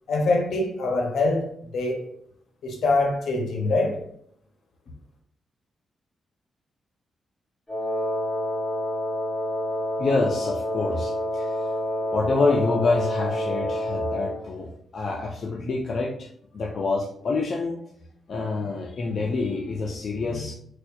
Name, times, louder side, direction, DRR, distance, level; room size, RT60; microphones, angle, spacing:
voice 1, 0.1-2.0 2.6-4.0, left 2 dB, 75° left, 2 dB, 0.8 m, -24 dB
Wind instrument woodwind instrument, 7.7-14.5, equal, 20° left, 1.2 m, -28 dB
voice 2, 10.0-11.8 12.0-17.8 18.3-20.5, left 3 dB, 55° left, -1 dB, 0.4 m, -27 dB
4.2 x 2.2 x 2.6 m, 0.68 s
cardioid pair, 80°, 0 cm